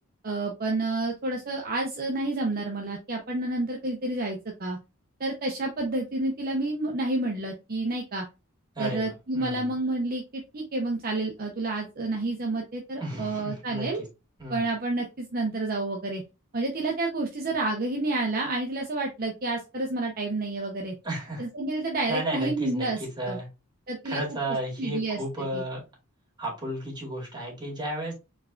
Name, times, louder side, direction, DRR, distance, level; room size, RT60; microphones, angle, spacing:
voice 1, 0.2-4.8 5.2-8.2 8.8-14.0 14.5-16.2 16.5-20.9 21.4-23.4 23.9-24.2 24.8-25.6, right 2 dB, 45° right, 1 dB, 0.8 m, -29 dB
voice 2, 8.8-9.6 13.0-13.9 14.4-14.7 21.0-21.4 22.1-23.5 24.0-25.8 26.4-28.1, right 1 dB, 20° right, -2 dB, 2.4 m, -33 dB
4.6 x 4.4 x 2.4 m, 0.27 s
head